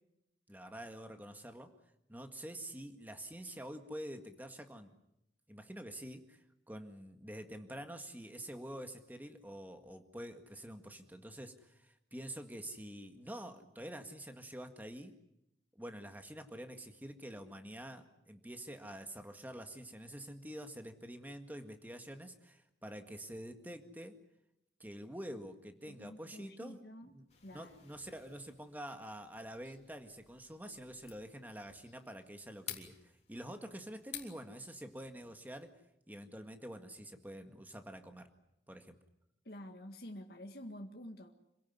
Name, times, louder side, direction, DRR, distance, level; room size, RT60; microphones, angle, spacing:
voice 1, 0.5-1.7 2.1-5.0 5.5-15.1 15.8-24.2 24.8-27.2 27.5-35.7 36.1-38.3 38.7-39.0, equal, 10° right, 6 dB, 1.9 m, -47 dB
voice 2, 25.9-27.1 27.4-27.8 39.5-41.4, left 1 dB, 60° left, 3 dB, 1.9 m, -49 dB
sound 1, 27.3-35.7, left 9 dB, 35° left, 3.3 m, -53 dB
27.0 x 17.0 x 9.6 m, 0.85 s
head